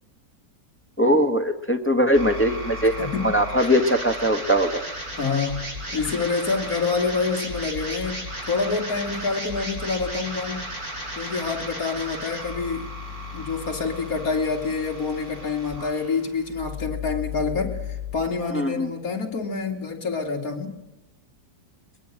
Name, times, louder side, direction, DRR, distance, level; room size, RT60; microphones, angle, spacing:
voice 1, 1.0-4.8 18.5-18.9, equal, 10° left, 5 dB, 1.4 m, -21 dB
sound 1, 2.1-18.1, left 1 dB, 65° right, 7.1 m, -35 dB
voice 2, 3.0-3.5 5.2-10.7 11.2-12.9 13.3-20.8, left 4 dB, 60° left, 2 dB, 3.2 m, -27 dB
23.0 x 21.5 x 7.7 m, 0.96 s
omnidirectional pair, 1.7 m